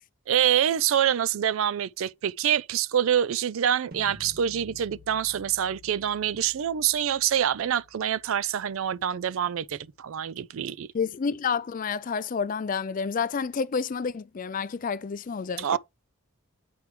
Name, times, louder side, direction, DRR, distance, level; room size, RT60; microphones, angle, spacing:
voice 1, 0.3-10.9 15.6-15.8, right 9 dB, 65° right, 0.4 m, -26 dB
sound 1, 3.9-9.9, left 1 dB, 45° right, 1.6 m, -52 dB
voice 2, 10.9-15.8, left 5 dB, 40° left, 0.4 m, -29 dB
8.2 x 4.7 x 3.2 m
head